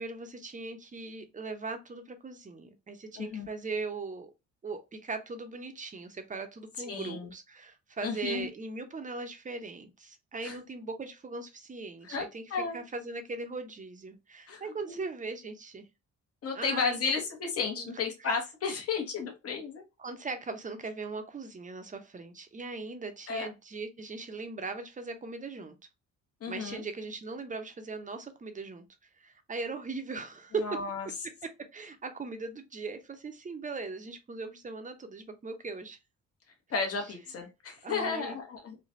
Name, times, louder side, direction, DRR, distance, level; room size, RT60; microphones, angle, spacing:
voice 1, 0.0-4.3 4.6-12.4 12.7-15.9 16.5-17.0 17.8-17.9 20.0-25.7 26.5-28.8 29.2-30.8 31.4-36.0 37.8-38.4, right 3 dB, 25° right, 0.6 m, -39 dB
voice 2, 3.2-3.5 6.8-7.3 8.0-8.5 10.4-10.6 12.0-12.8 14.5-15.0 16.4-19.8 23.3-23.5 26.4-26.8 30.6-31.1 36.7-38.8, left 5 dB, 50° left, 1.0 m, -33 dB
3.2 x 2.2 x 2.5 m
cardioid pair, 90°, 30 cm